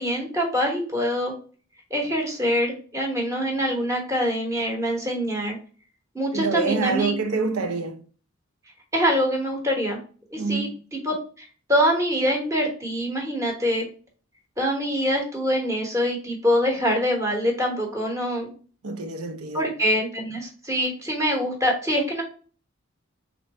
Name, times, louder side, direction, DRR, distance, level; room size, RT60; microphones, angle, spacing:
voice 1, 0.0-1.3 1.9-5.6 6.1-7.1 8.9-10.0 10.3-13.9 14.6-18.5 19.5-22.2, equal, 15° right, 1.1 m, -24 dB
voice 2, 6.3-8.0 10.4-10.8 18.8-19.7, right 4 dB, 90° right, 0.6 m, -26 dB
3.8 x 3.3 x 4.1 m
head